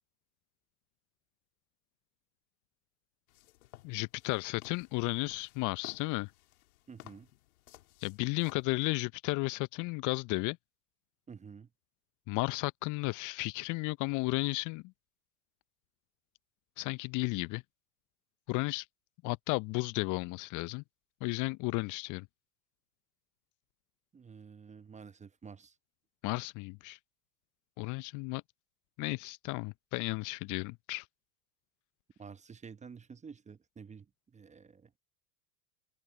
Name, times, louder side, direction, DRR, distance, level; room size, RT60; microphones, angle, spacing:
sound 1, 3.3-8.7, left 17 dB, 60° left, 3.7 m, -56 dB
voice 1, 3.8-6.3 8.0-10.6 12.3-14.8 16.8-17.6 18.5-18.8 19.2-20.8 21.2-22.3 26.2-27.0 27.8-28.4 29.0-31.0, left 25 dB, 40° left, 0.8 m, -33 dB
voice 2, 6.9-7.3 11.3-11.7 24.1-25.7 32.2-34.1 34.3-35.0, right 6 dB, 15° right, 1.0 m, -50 dB
open air
figure-of-eight pair, 80°, 47 cm